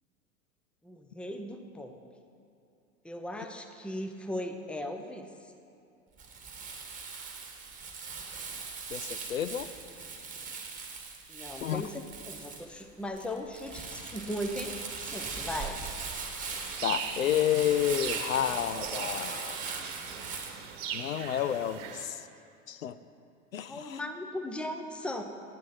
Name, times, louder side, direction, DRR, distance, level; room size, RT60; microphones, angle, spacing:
voice 1, 0.8-2.0 3.0-5.5 11.3-15.8 23.7-25.2, left 1 dB, 5° left, 5 dB, 0.6 m, -38 dB
Crumpling crinkling, 6.2-20.5, right 4 dB, 20° right, 1.5 m, -40 dB
voice 2, 8.9-9.7 11.6-11.8 16.8-19.6 20.9-22.2 22.7-23.0 23.5-24.0, left 10 dB, 75° left, 12 dB, 0.5 m, -30 dB
sound 1, 16.5-22.0, right 7 dB, 50° right, 1.1 m, -40 dB
9.5 x 9.5 x 5.7 m, 2.6 s
figure-of-eight pair, 85°, 40 cm